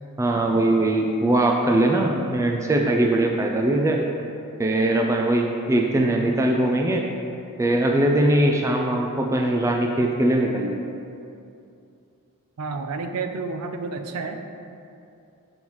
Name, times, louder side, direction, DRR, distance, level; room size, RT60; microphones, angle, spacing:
voice 1, 0.2-4.0 4.6-7.1 7.6-10.8, right 1 dB, 15° right, 1 dB, 0.3 m, -21 dB
voice 2, 5.9-6.5 12.6-14.4, right 4 dB, 85° right, 6 dB, 0.5 m, -31 dB
6.9 x 5.5 x 3.1 m, 2.6 s
head